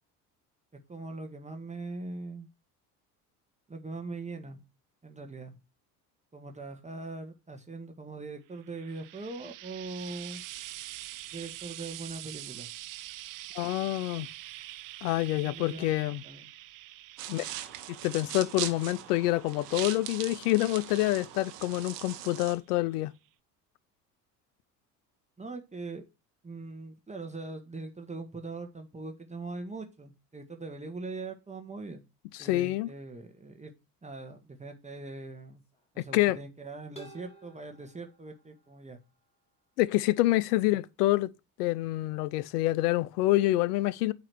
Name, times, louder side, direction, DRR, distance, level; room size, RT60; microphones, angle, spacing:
voice 1, 0.9-2.5 3.7-4.6 5.0-5.6 6.3-10.4 11.3-12.7 15.3-16.5 25.4-26.0 26.4-32.0 32.4-33.7 34.0-35.6 35.9-39.0, right 3 dB, 15° right, 1.2 m, -41 dB
Frying (food), 8.5-22.0 22.9-23.0, right 16 dB, 45° right, 0.6 m, -46 dB
voice 2, 13.5-14.3 15.0-16.2 17.3-17.5 18.0-23.1 32.4-32.9 36.1-36.4 39.8-41.3 41.6-44.1, left 17 dB, 70° left, 0.6 m, -27 dB
sound 1, 17.2-22.6, right 12 dB, 75° right, 1.0 m, -40 dB
sound 2, 35.5-35.9 37.0-39.1, right 3 dB, 10° left, 2.2 m, -53 dB
8.9 x 3.0 x 5.9 m
hypercardioid pair, 60°, 48 cm